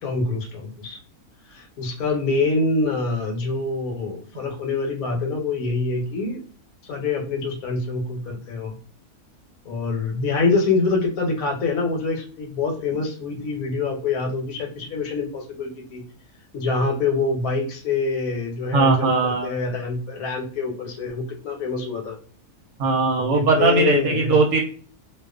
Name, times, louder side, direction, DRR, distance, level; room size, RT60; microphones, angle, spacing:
voice 1, 0.0-1.0 1.5-6.4 6.8-8.7 9.6-16.0 16.5-22.2 23.2-24.4, left 3 dB, 75° left, 2 dB, 1.1 m, -25 dB
voice 2, 18.7-19.5 22.8-24.6, right 3 dB, 70° right, 1 dB, 0.9 m, -19 dB
2.4 x 2.3 x 2.3 m, 0.43 s
omnidirectional pair, 1.6 m